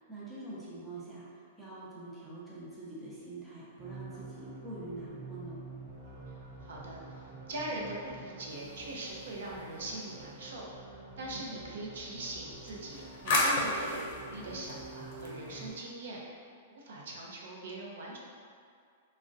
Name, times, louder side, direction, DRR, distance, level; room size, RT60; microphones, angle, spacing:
voice 1, 0.0-5.6, right 2 dB, 5° right, -9 dB, 0.5 m, -45 dB
sound 1, 3.8-15.7, right 3 dB, 50° right, 0.9 m, -47 dB
voice 2, 6.6-10.6 11.2-16.2 16.7-18.2, right 1 dB, 75° right, -3 dB, 0.5 m, -41 dB
sound 2, 8.5-10.2 12.5-15.8, left 1 dB, 45° left, 0.6 m, -35 dB
3.5 x 2.1 x 2.5 m, 2.2 s
supercardioid pair, 165°, 0 cm